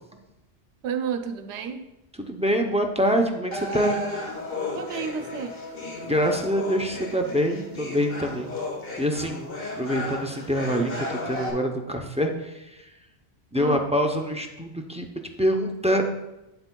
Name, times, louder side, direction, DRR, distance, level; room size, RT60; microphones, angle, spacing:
voice 1, 0.8-1.8 4.7-5.6 13.5-13.9, right 7 dB, 85° right, 6 dB, 0.9 m, -31 dB
voice 2, 2.2-4.0 6.0-8.5 9.0-9.5 9.8-12.6 13.5-15.0 15.4-16.1, equal, 10° right, 3 dB, 0.3 m, -25 dB
sound 1, 3.5-11.5, left 2 dB, 60° left, 1.4 m, -34 dB
8.8 x 8.0 x 2.2 m, 0.96 s
omnidirectional pair, 1.1 m